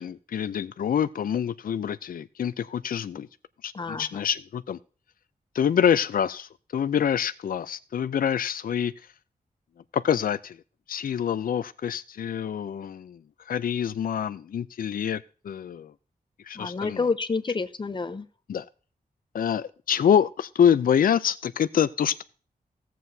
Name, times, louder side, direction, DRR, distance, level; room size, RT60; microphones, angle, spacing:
voice 1, 0.0-3.3 3.6-4.8 5.5-8.9 9.9-10.6 10.9-13.2 13.5-15.9 16.4-17.1 18.5-18.7 19.3-22.2, left 8 dB, 70° left, 14 dB, 0.4 m, -26 dB
voice 2, 16.6-18.3, left 4 dB, 30° left, 13 dB, 0.6 m, -28 dB
16.5 x 7.6 x 2.7 m, 0.39 s
wide cardioid pair, 150°, 15 cm